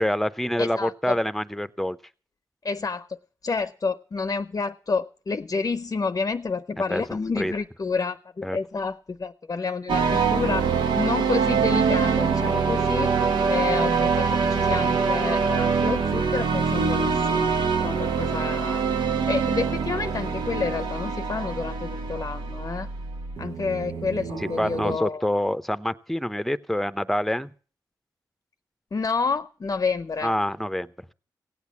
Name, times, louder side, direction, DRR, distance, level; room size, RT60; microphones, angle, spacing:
voice 1, 0.0-2.0 6.9-7.5 8.4-8.6 24.4-27.5 30.2-30.9, left 1 dB, 5° left, 0.8 m, -26 dB
voice 2, 0.6-1.2 2.6-10.7 11.0-17.6 17.8-18.8 19.3-22.9 23.4-25.3 28.9-30.3, left 4 dB, 45° left, 0.6 m, -29 dB
sound 1, 9.9-25.0, right 5 dB, 85° right, 1.0 m, -24 dB
16.5 x 8.3 x 7.1 m
cardioid pair, 50°, 8 cm